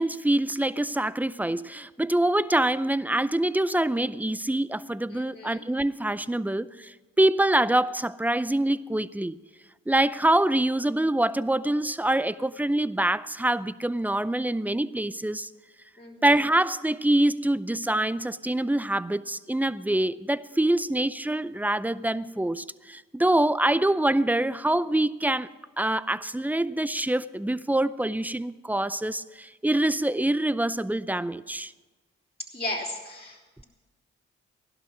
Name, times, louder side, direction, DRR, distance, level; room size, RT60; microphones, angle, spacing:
voice 1, 0.0-9.4 9.9-15.5 16.2-25.5 25.8-31.7, right 1 dB, 5° right, 0.5 m, -25 dB
voice 2, 5.1-5.6 16.0-16.4 32.4-33.6, left 1 dB, 20° left, 3.4 m, -36 dB
16.0 x 12.0 x 6.1 m
supercardioid pair, 45°, 31 cm